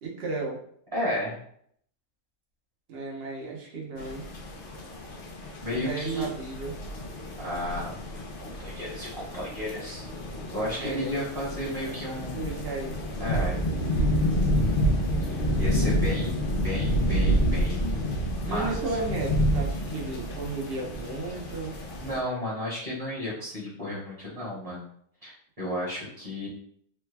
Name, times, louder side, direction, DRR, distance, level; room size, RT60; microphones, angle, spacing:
voice 1, 0.0-0.6 2.9-4.3 5.7-6.8 10.8-11.2 11.9-12.9 18.4-21.9, right 3 dB, 50° right, -2 dB, 0.9 m, -34 dB
voice 2, 0.9-1.4 5.6-6.3 7.4-10.0 10.5-12.4 13.2-13.6 15.2-17.9 18.4-18.7 22.0-24.9 25.2-26.5, equal, 25° right, -7 dB, 1.0 m, -33 dB
sound 1, 4.0-22.2, equal, 60° left, 0.5 m, -29 dB
3.2 x 2.2 x 3.3 m, 0.66 s
omnidirectional pair, 1.5 m